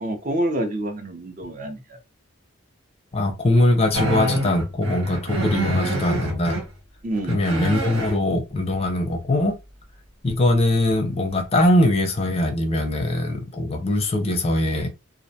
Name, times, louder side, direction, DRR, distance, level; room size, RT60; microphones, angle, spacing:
voice 1, 0.0-1.8 7.0-7.4, right 1 dB, 40° right, 0.5 m, -27 dB
voice 2, 3.1-6.6 7.3-9.5 10.2-14.9, left 1 dB, 30° left, 0.5 m, -21 dB
sound 1, 3.9-6.6 7.1-8.2 11.0-11.1 11.7-12.0, right 1 dB, 90° right, 1.2 m, -26 dB
2.4 x 2.1 x 2.6 m
head